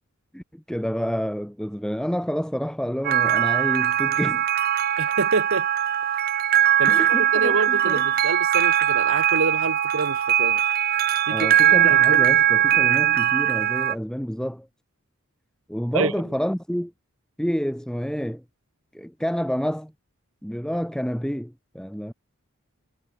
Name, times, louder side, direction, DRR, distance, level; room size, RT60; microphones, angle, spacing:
voice 1, 0.3-4.4 6.9-8.1 11.3-14.7 15.7-16.9 17.4-18.4 18.9-19.9 20.4-22.1, equal, 5° left, 2.7 m, -28 dB
sound 1, 3.0-13.9, right 11 dB, 45° right, 0.5 m, -20 dB
voice 2, 5.0-5.7 6.8-6.9 7.3-10.6 11.3-12.3 15.9-16.1, right 3 dB, 65° right, 1.2 m, -27 dB
head